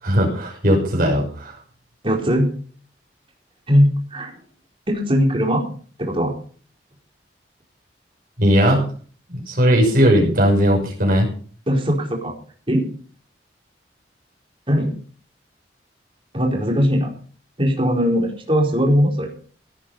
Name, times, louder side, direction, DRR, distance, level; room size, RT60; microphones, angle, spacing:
voice 1, 0.0-1.6 8.4-8.8 9.3-11.3, equal, 55° right, -1 dB, 6.1 m, -17 dB
voice 2, 2.0-2.5 3.7-4.3 4.9-5.6 6.0-6.3 11.7-12.3 12.7-12.8 14.7-14.9 16.3-17.1 17.6-19.3, equal, 30° right, 0 dB, 4.4 m, -19 dB
17.5 x 9.0 x 5.7 m, 0.43 s
head